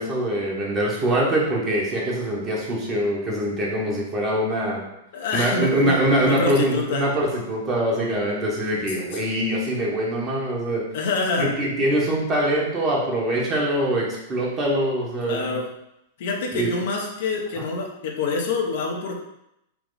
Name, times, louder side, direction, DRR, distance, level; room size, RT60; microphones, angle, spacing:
voice 1, 0.0-4.8 5.3-10.8 11.4-15.6 16.5-16.7 17.6-17.7, right 1 dB, 25° right, -3 dB, 1.4 m, -23 dB
voice 2, 5.1-7.0 10.9-11.5 15.2-15.7 16.2-19.1, left 4 dB, 65° left, 0 dB, 0.9 m, -26 dB
4.7 x 2.4 x 4.0 m, 0.82 s
hypercardioid pair, 115°, 0 cm